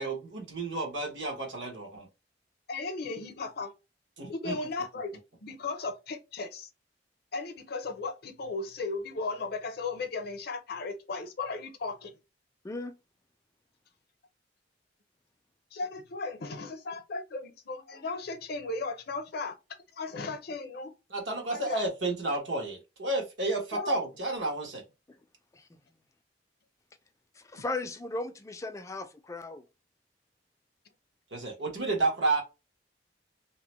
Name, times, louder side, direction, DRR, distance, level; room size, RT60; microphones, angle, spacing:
voice 1, 0.0-2.1 4.2-4.6 21.1-24.8 31.3-32.4, right 2 dB, 80° right, 1.2 m, -31 dB
voice 2, 2.7-3.7 4.3-6.7 7.3-12.1 15.7-19.6 20.0-20.9 21.5-21.8 23.7-24.0, left 3 dB, 60° left, 0.6 m, -36 dB
voice 3, 12.6-13.0 25.5-25.7 27.4-29.6, left 2 dB, 15° left, 0.3 m, -36 dB
2.9 x 2.1 x 2.9 m
head